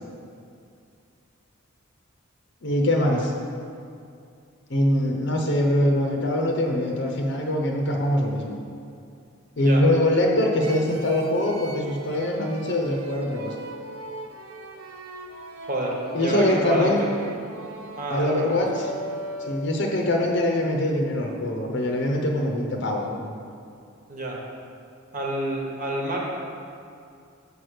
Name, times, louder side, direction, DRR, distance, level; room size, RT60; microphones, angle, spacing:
voice 1, 2.6-3.3 4.7-8.6 9.6-13.5 16.1-17.0 18.1-18.9 19.5-23.3, left 1 dB, 55° left, 1 dB, 0.8 m, -23 dB
sound 1, 10.6-19.9, right 1 dB, 85° right, 0.7 m, -38 dB
voice 2, 15.6-17.1 17.9-18.6 24.1-24.4 25.1-26.2, right 1 dB, 40° right, -2 dB, 1.3 m, -28 dB
6.5 x 5.1 x 6.3 m, 2.5 s
head